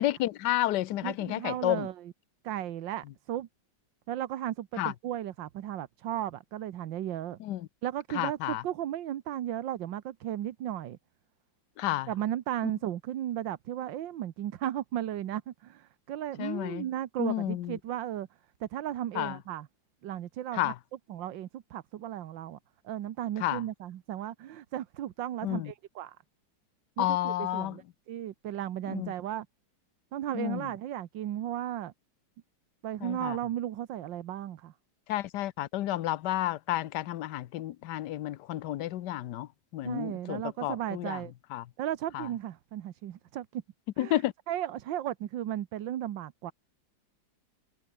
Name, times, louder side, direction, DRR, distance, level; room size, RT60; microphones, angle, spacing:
voice 1, 0.0-1.9 4.8-4.9 7.4-7.7 8.1-8.6 11.8-12.1 16.4-16.9 17.2-17.8 19.1-19.4 20.5-20.7 23.4-23.6 25.4-25.7 27.0-27.8 28.9-29.1 30.3-30.6 33.0-33.4 35.1-41.2 41.5-41.6 42.1-42.3 44.0-44.3, left 14 dB, 70° left, 1.3 m, -31 dB
voice 2, 1.0-2.1 2.4-3.5 4.1-7.4 7.8-11.0 12.1-18.3 18.6-19.7 20.0-20.7 21.1-22.6 22.8-26.2 27.0-29.5 30.1-31.9 32.8-34.7 39.8-41.3 41.8-43.6 44.0-46.5, right 12 dB, 75° right, 1.7 m, -35 dB
omnidirectional pair, 2.1 m